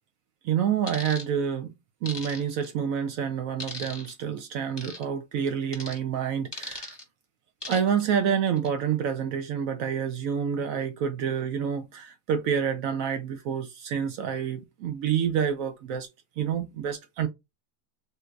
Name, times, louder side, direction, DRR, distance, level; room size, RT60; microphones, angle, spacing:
voice 1, 0.4-1.7 2.0-6.9 7.7-16.1 16.4-17.3, right 8 dB, 75° right, 1.0 m, -28 dB
sound 1, 0.9-1.3 2.1-2.7 3.6-4.1 4.8-5.0 5.7-6.0 6.5-7.0 7.6-8.0 8.5-8.7, left 2 dB, 20° left, 1.1 m, -38 dB
3.7 x 2.7 x 2.3 m
omnidirectional pair, 1.5 m